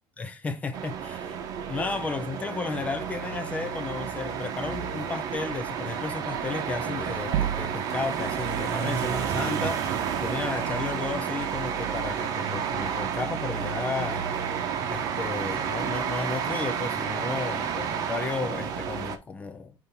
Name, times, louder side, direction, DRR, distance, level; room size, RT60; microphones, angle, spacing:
voice 1, 0.2-1.0 1.7-14.3 14.9-19.7, left 4 dB, 15° left, 0.5 m, -33 dB
sound 1, 0.7-19.2, right 7 dB, 45° right, 0.9 m, -31 dB
sound 2, 7.3-8.3, right 10 dB, 70° right, 0.5 m, -29 dB
5.9 x 3.4 x 5.5 m
cardioid pair, 175°, 9 cm